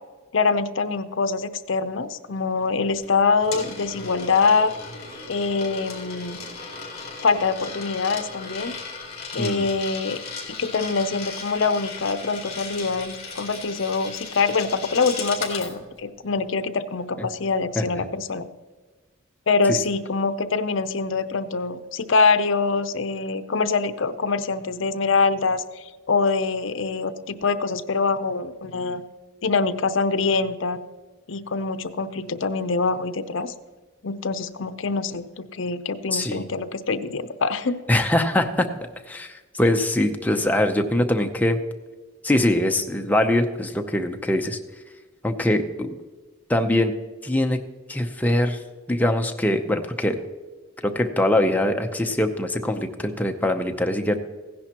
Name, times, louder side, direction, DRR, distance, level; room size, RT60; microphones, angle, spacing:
voice 1, 0.3-4.7 5.3-6.4 7.2-8.8 9.3-10.2 10.6-18.5 19.5-29.0 29.4-30.8 31.3-33.5 34.0-37.8, left 4 dB, 70° left, 11 dB, 0.6 m, -24 dB
Coin (dropping), 3.0-15.7, left 4 dB, 30° left, 3.2 m, -36 dB
voice 2, 36.1-36.4 37.9-38.7 39.1-41.6 42.2-44.6 45.2-45.9 46.5-46.9 47.2-47.6 47.9-48.6 48.9-50.2 50.8-54.2, left 1 dB, 10° left, 4 dB, 0.6 m, -22 dB
16.0 x 10.5 x 2.9 m, 1.3 s
head